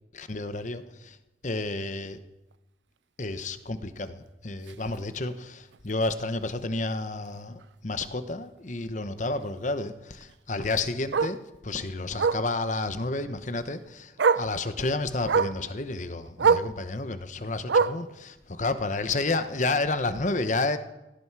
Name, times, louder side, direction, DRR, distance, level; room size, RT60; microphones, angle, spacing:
voice 1, 0.1-1.2 1.4-2.2 3.2-20.8, left 2 dB, 40° left, 11 dB, 1.0 m, -31 dB
Bark, 4.7-4.8 5.2-5.4 5.7-5.8 6.1-6.2 7.6-7.7 10.2-10.3 11.1-11.4 12.2-12.5 13.7-13.8 14.2-14.5 15.3-15.6 16.4-16.7 17.7-18.1 19.1-19.2, right 5 dB, 80° right, 0.5 m, -23 dB
17.0 x 16.5 x 4.8 m, 0.99 s
head